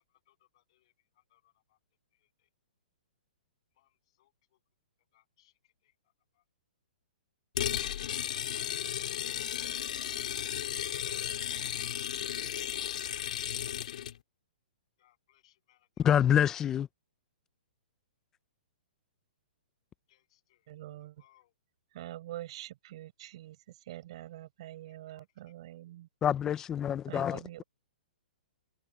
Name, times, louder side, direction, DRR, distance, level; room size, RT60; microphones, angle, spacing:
voice 1, 0.3-0.9 1.3-1.8 3.8-3.9 4.2-4.3 5.1-5.5 5.8-5.9 6.3-6.4 8.3-9.7 10.4-12.2 15.0-16.1 20.1-20.7 21.2-21.5 25.1-25.2, left 15 dB, 35° left, 7.9 m, -69 dB
sound 1, 7.5-14.2, left 10 dB, 50° left, 2.9 m, -34 dB
voice 2, 16.0-16.9 26.2-27.6, left 9 dB, 10° left, 0.4 m, -27 dB
voice 3, 20.7-21.2 21.9-23.6 23.8-26.1 27.1-27.6, right 14 dB, 35° right, 5.5 m, -45 dB
hypercardioid pair, 175°, 5 cm